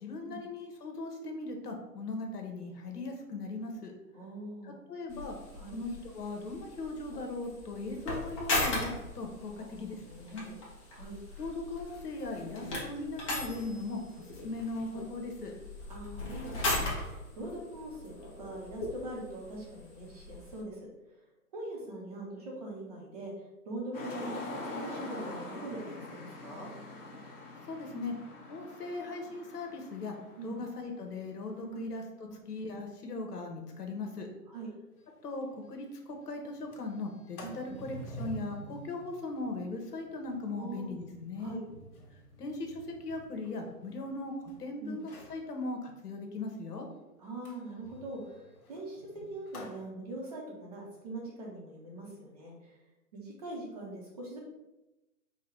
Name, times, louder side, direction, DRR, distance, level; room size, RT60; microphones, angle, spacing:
voice 1, 0.0-3.9 4.6-5.4 5.7-10.0 10.3-10.5 11.4-14.0 14.4-15.5 27.7-28.1 28.5-30.2 30.4-32.0 32.5-34.3 35.2-41.6 42.4-46.9, left 2 dB, 80° left, 3 dB, 1.2 m, -39 dB
voice 2, 4.1-4.8 5.5-5.7 9.5-10.6 10.9-11.2 15.9-20.9 21.5-23.3 23.6-26.7 30.4-30.6 31.7-31.8 32.2-32.4 34.5-34.7 37.4-37.8 40.5-40.9 41.4-41.6 44.8-45.0 47.2-52.8 53.1-54.4, right 2 dB, 25° right, -2 dB, 0.7 m, -42 dB
sound 1, 5.1-20.6, left 2 dB, 20° left, 0.9 m, -38 dB
sound 2, 23.9-31.0 31.6-31.9, left 2 dB, 35° left, 1.3 m, -43 dB
Sliding door, 35.0-35.1 35.4-35.5 35.8-36.1 36.5-44.5 45.0-45.4 47.4-49.8, equal, 60° left, 1.4 m, -49 dB
4.8 x 2.2 x 4.5 m, 0.99 s
hypercardioid pair, 160°, 47 cm